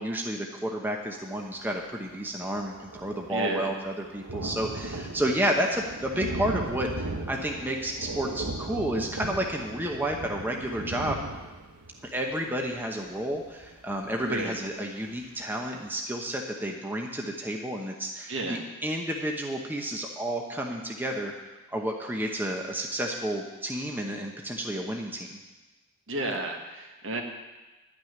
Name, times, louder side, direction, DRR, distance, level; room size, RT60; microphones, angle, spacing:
voice 1, 0.0-11.2 12.1-21.3 21.7-25.4, right 1 dB, 10° right, 0 dB, 0.9 m, -31 dB
Thunder, 1.8-1.9 2.1-14.7 15.2-15.3 15.6-15.7, right 2 dB, 80° right, 1.1 m, -37 dB
voice 2, 3.3-3.7 10.8-11.0 14.2-14.5 18.3-18.6 26.1-27.2, right 2 dB, 60° right, 2 dB, 1.7 m, -32 dB
11.5 x 6.2 x 9.4 m, 1.2 s
head